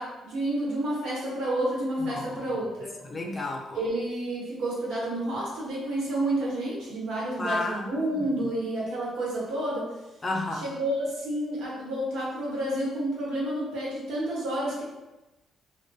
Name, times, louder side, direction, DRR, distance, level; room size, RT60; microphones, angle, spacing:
voice 1, 0.0-2.9 3.7-9.9 10.5-14.8, right 1 dB, 85° right, -6 dB, 1.0 m, -30 dB
voice 2, 2.1-2.4 3.1-3.8 7.4-8.1 10.2-10.6, left 2 dB, 30° left, 1 dB, 0.4 m, -31 dB
2.5 x 2.1 x 2.3 m, 1.0 s
cardioid pair, 90°, 0 cm